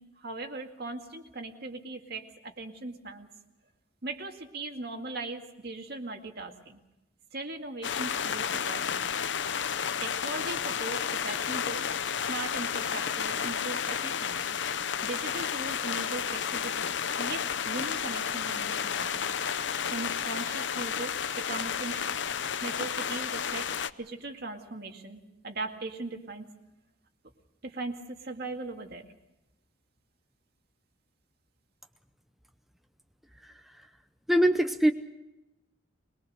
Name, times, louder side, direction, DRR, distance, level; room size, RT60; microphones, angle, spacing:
voice 1, 0.0-3.3 4.0-6.8 7.3-9.2 10.0-11.9 12.3-14.6 15.0-16.8 17.2-19.1 19.9-22.2 22.6-23.7 24.0-26.5 27.6-29.0, right 2 dB, 55° right, 4 dB, 2.1 m, -39 dB
sound 1, 7.8-23.9, left 7 dB, 65° left, 0.7 m, -31 dB
voice 2, 34.3-34.9, equal, ahead, 6 dB, 0.8 m, -23 dB
22.5 x 21.5 x 6.5 m, 0.95 s
head